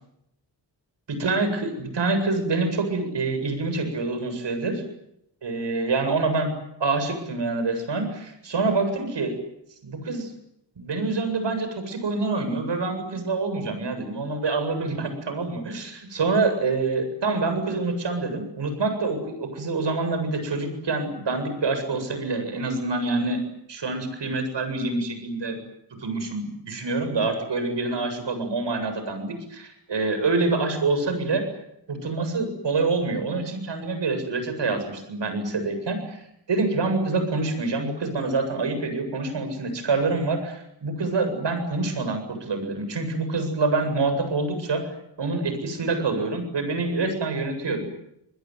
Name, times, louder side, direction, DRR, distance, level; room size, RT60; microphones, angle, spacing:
voice 1, 1.2-4.8 5.4-6.5 6.8-9.3 9.8-10.3 10.8-23.4 23.7-25.6 26.0-31.5 31.9-36.2 36.5-44.8 45.2-47.9, right 3 dB, 75° right, 8 dB, 8.0 m, -26 dB
27.5 x 22.0 x 9.6 m, 0.80 s
wide cardioid pair, 100°, 43 cm